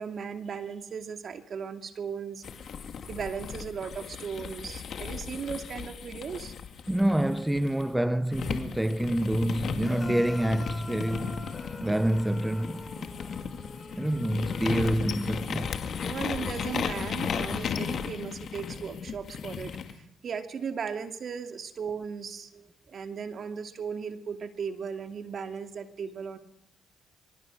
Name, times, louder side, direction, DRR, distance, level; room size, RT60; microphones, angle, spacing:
voice 1, 0.0-2.4 3.1-6.5 16.0-19.9 20.2-26.4, right 6 dB, 55° right, 2.5 m, -36 dB
sound 1, 2.4-7.8 8.3-19.9, left 7 dB, 60° left, 2.2 m, -35 dB
voice 2, 6.9-11.5 11.8-13.1 14.0-16.0, right 1 dB, 10° right, 0.9 m, -27 dB
sound 2, 9.8-14.9, left 2 dB, 20° left, 3.1 m, -44 dB
24.0 x 23.0 x 6.4 m
supercardioid pair, 60°, 0 cm